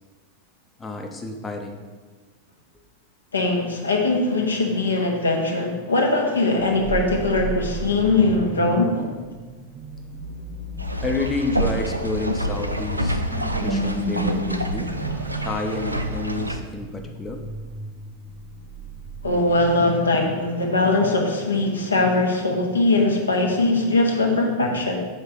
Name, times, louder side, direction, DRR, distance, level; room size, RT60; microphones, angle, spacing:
voice 1, 0.8-1.8 11.0-13.2 13.6-14.9 15.4-17.4, left 3 dB, 15° left, 3 dB, 0.7 m, -29 dB
voice 2, 3.3-9.1 19.2-25.0, left 2 dB, 75° left, 1 dB, 1.1 m, -21 dB
sound 1, 6.8-20.1, right 1 dB, 15° right, 0.7 m, -33 dB
sound 2, 10.8-16.6, right 1 dB, 85° right, 0.5 m, -27 dB
6.4 x 4.4 x 5.0 m, 1.3 s
figure-of-eight pair, 90°, 0 cm